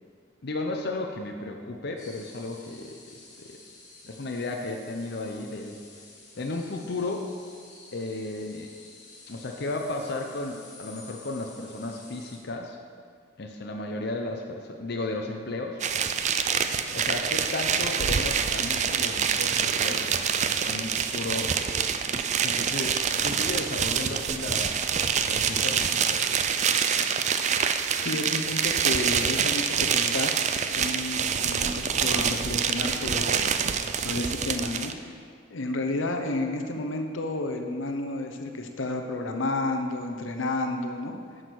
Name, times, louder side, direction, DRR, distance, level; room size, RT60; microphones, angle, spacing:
voice 1, 0.4-3.6 4.0-5.8 6.4-7.3 7.9-8.7 9.3-12.8 13.4-15.8 16.9-20.1 20.7-21.5 22.4-24.7 25.1-26.2, left 2 dB, 55° left, 2 dB, 0.7 m, -34 dB
sound 1, 2.0-12.4, left 3 dB, 40° left, 2.5 m, -50 dB
sound 2, 15.8-34.9, right 7 dB, 35° right, 0.4 m, -26 dB
voice 2, 28.0-30.3 30.8-33.4 34.0-35.1 35.5-41.1, left 2 dB, 85° left, 5 dB, 0.9 m, -31 dB
9.5 x 6.4 x 6.2 m, 2.1 s
head